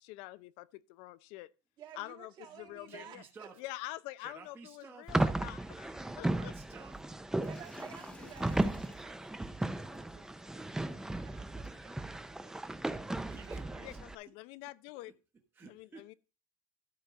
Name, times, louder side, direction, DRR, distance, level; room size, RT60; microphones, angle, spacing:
voice 1, 0.0-1.5 1.9-3.2 3.6-6.5 13.8-15.1 15.6-16.1, left 18 dB, 70° left, 0.5 m, -46 dB
voice 2, 1.8-3.5 7.4-13.2 13.5-13.6, right 9 dB, 50° right, 1.9 m, -54 dB
voice 3, 2.9-3.6 4.2-5.2 6.3-7.0 13.2-13.8 15.5-16.1, right 5 dB, 20° right, 1.1 m, -52 dB
sound 1, 5.1-14.1, right 1 dB, 5° right, 0.5 m, -35 dB
sound 2, 7.4-13.0, left 2 dB, 10° left, 1.2 m, -57 dB
12.5 x 4.3 x 6.0 m
cardioid pair, 130°, 10 cm